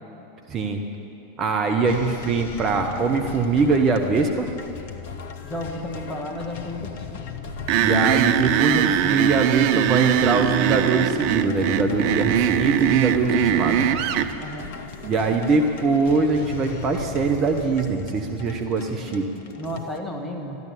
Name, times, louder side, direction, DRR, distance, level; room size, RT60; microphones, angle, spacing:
voice 1, 0.5-0.8 1.4-4.5 7.8-13.7 15.0-19.3, right 4 dB, 30° right, 4 dB, 1.1 m, -22 dB
sound 1, 1.9-20.0, left 5 dB, 60° left, 1.0 m, -36 dB
voice 2, 5.4-7.2 13.5-14.0 14.4-14.7 19.6-20.6, left 1 dB, 15° left, 2 dB, 2.0 m, -33 dB
sound 2, 7.7-14.3, right 10 dB, 50° right, 0.6 m, -21 dB
13.5 x 11.0 x 8.6 m, 2.9 s
figure-of-eight pair, 85°, 0 cm